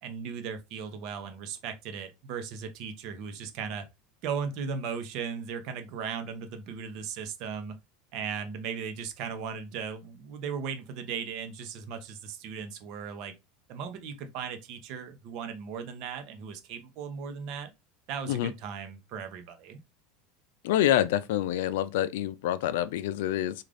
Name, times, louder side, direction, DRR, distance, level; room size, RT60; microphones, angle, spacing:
voice 1, 0.0-3.8 4.2-7.8 8.1-13.3 13.7-17.7 18.1-19.8, right 6 dB, 45° right, 0.7 m, -37 dB
voice 2, 20.6-23.5, left 12 dB, 75° left, 0.4 m, -27 dB
3.7 x 2.4 x 3.3 m
supercardioid pair, 160°, 0 cm